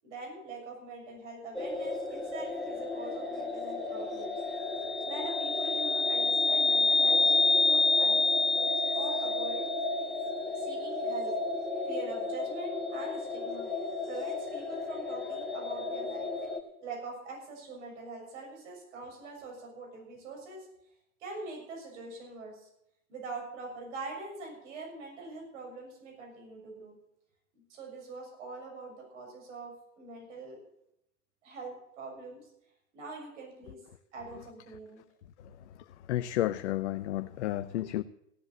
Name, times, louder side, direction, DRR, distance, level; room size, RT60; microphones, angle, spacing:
voice 1, 0.0-4.4 4.7-9.6 10.5-11.4 11.9-13.7 14.1-16.3 16.8-20.7 21.2-22.7 23.1-26.9 27.5-30.6 31.4-32.5 32.9-33.8 34.1-35.0, right 3 dB, 55° right, 0 dB, 6.8 m, -44 dB
sound 1, 1.5-16.6, left 3 dB, ahead, 1.5 m, -30 dB
voice 2, 36.1-38.0, left 14 dB, 55° left, 11 dB, 0.7 m, -32 dB
16.5 x 7.9 x 7.1 m, 0.80 s
hypercardioid pair, 110°, 42 cm